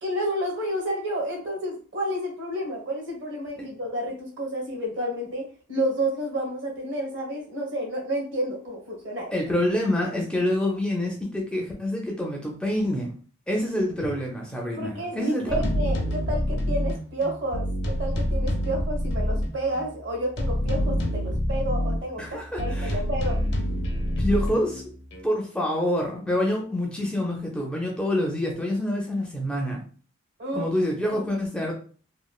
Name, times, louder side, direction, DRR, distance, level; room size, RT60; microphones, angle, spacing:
voice 1, 0.0-9.3 14.7-23.4 30.4-30.7 31.1-31.2, right 1 dB, 65° right, -1 dB, 1.2 m, -30 dB
voice 2, 9.3-13.1 13.5-15.6 22.2-23.0 24.2-24.8 25.2-29.8 30.5-31.8, left 1 dB, 5° left, -1 dB, 0.4 m, -26 dB
sound 1, 15.5-19.9 20.4-22.0 22.6-25.2, equal, 55° left, 0.5 m, -27 dB
3.0 x 2.3 x 2.3 m, 0.41 s
head